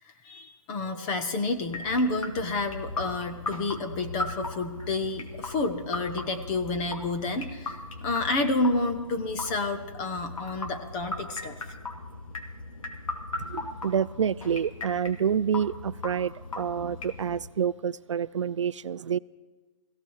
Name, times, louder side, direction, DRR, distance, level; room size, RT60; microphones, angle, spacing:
voice 1, 0.2-7.8 8.0-11.6, left 2 dB, 15° left, 6 dB, 0.7 m, -29 dB
sound 1, 1.6-17.5, left 2 dB, 80° left, 2.7 m, -38 dB
voice 2, 13.4-19.2, right 8 dB, 65° right, 18 dB, 0.4 m, -28 dB
17.5 x 16.0 x 4.7 m, 1.4 s
hypercardioid pair, 170°, 17 cm